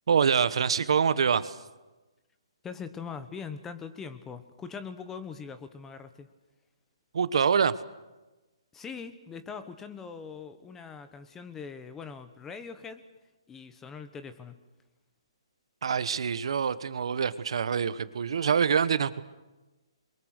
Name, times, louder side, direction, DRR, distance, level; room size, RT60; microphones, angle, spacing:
voice 1, 0.1-1.5 7.1-7.7 15.8-19.2, right 7 dB, 65° right, 14 dB, 1.2 m, -25 dB
voice 2, 2.6-6.3 8.7-13.0 13.5-14.6, left 6 dB, 10° left, 11 dB, 1.2 m, -42 dB
28.0 x 23.0 x 6.6 m, 1.1 s
hypercardioid pair, 160°, 3 cm